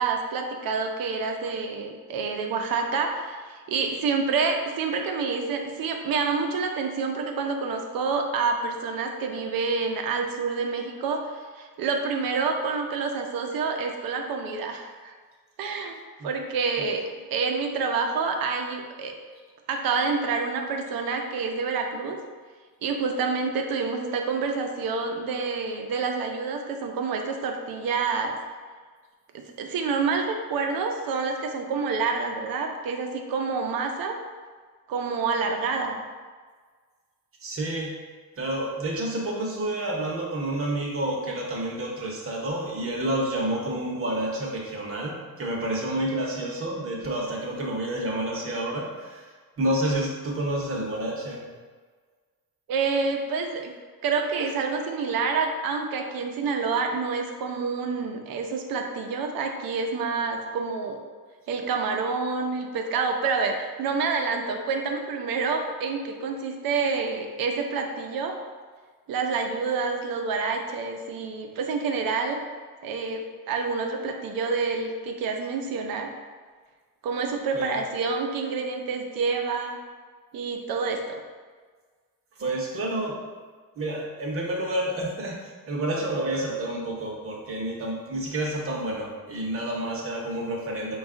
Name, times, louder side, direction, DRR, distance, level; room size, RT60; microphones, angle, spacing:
voice 1, 0.0-15.1 15.6-16.0 16.2-17.0 17.3-19.1 19.7-22.2 22.8-28.4 29.3-34.1 34.9-36.0 52.7-53.7 54.0-61.0 61.5-68.3 69.1-72.4 72.8-76.1 77.0-79.8 80.3-81.2, right 4 dB, 75° right, 4 dB, 0.6 m, -28 dB
voice 2, 37.4-37.9 38.4-51.5 54.4-54.5 77.5-77.8 82.4-83.2 83.8-91.0, right 1 dB, 40° right, -2 dB, 0.8 m, -29 dB
5.1 x 2.4 x 3.7 m, 1.5 s
cardioid pair, 165°, 35 cm